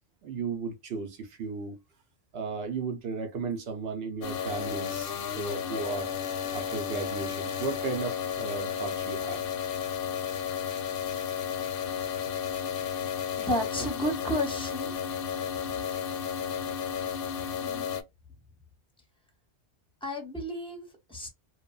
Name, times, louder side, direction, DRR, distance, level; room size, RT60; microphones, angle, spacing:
voice 1, 0.2-1.8 2.3-6.1 6.5-9.4, right 4 dB, 65° right, 0.8 m, -35 dB
sound 1, 4.2-18.0, left 8 dB, 65° left, 0.7 m, -33 dB
voice 2, 13.4-14.9 17.6-18.0 20.0-21.3, equal, 5° left, 0.7 m, -32 dB
3.0 x 2.1 x 2.2 m
omnidirectional pair, 1.2 m